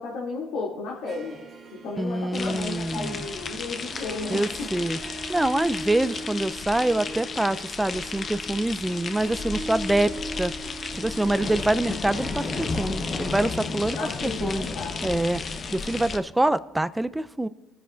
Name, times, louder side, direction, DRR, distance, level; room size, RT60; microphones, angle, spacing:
voice 1, 0.0-1.4 1.7-4.7 13.9-15.1, left 3 dB, 75° left, -4 dB, 2.5 m, -34 dB
Harp, 0.9-16.2, right 1 dB, 45° right, 1.8 m, -41 dB
voice 2, 2.0-3.2 4.3-5.0 5.3-10.1 10.4-10.5 10.9-14.0 14.2-14.7 15.0-15.4 15.7-17.5, right 1 dB, 10° right, 15 dB, 0.5 m, -25 dB
sound 1, 2.3-16.2, left 4 dB, 40° left, 1.0 m, -33 dB
22.0 x 10.0 x 2.5 m, 1.1 s
cardioid pair, 100°, 0 cm